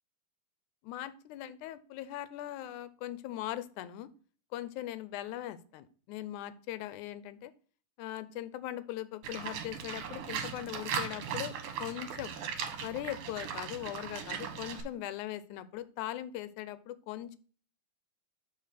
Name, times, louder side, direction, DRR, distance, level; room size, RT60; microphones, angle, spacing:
voice 1, 0.8-4.1 4.5-7.5 8.0-11.5 11.8-12.3 12.8-17.4, left 13 dB, 80° left, 16 dB, 2.0 m, -40 dB
Livestock farm animals working animals, 9.2-14.8, right 7 dB, 75° right, 2.6 m, -38 dB
7.5 x 4.7 x 5.8 m, 0.42 s
omnidirectional pair, 3.6 m